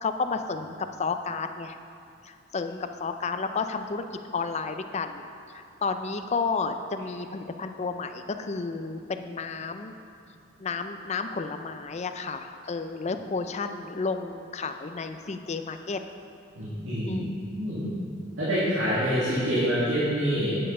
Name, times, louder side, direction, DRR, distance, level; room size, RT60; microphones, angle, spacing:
voice 1, 0.0-1.8 2.2-4.0 4.3-5.2 5.5-9.9 10.6-16.0 17.0-17.4, left 4 dB, 35° left, 8 dB, 0.4 m, -31 dB
voice 2, 16.6-17.2 17.6-18.0 18.4-20.6, equal, 80° right, -10 dB, 2.2 m, -26 dB
8.8 x 7.6 x 5.4 m, 2.5 s
head